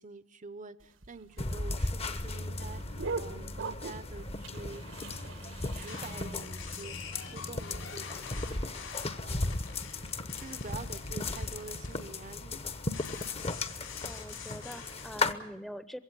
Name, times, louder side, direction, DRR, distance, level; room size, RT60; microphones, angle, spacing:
voice 1, 0.0-5.0 5.7-9.7 10.3-12.8, right 3 dB, 40° right, 14 dB, 0.8 m, -47 dB
sound 1, 0.8-6.4, right 4 dB, 75° right, 1.5 m, -42 dB
sound 2, 1.4-15.3, left 2 dB, 30° left, 1.0 m, -36 dB
sound 3, 5.8-15.1, left 6 dB, 80° left, 5.2 m, -47 dB
voice 2, 14.0-16.0, equal, ahead, 13 dB, 0.8 m, -44 dB
22.0 x 16.5 x 9.7 m, 0.76 s
head